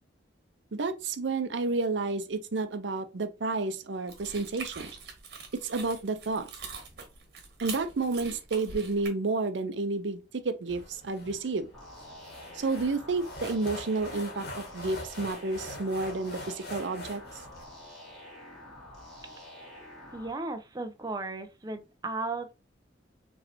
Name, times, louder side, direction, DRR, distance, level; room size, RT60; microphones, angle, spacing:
voice 1, 0.7-4.9 5.5-6.5 7.6-11.7 12.5-17.2, right 3 dB, 80° right, 0.6 m, -31 dB
sound 1, 4.1-9.1, right 5 dB, 60° right, 1.4 m, -43 dB
sound 2, 10.7-17.6, left 1 dB, 60° left, 1.6 m, -43 dB
sound 3, 11.7-20.3, left 1 dB, 5° left, 2.3 m, -48 dB
voice 2, 20.1-22.5, right 3 dB, 20° right, 0.5 m, -35 dB
5.3 x 3.2 x 2.8 m
head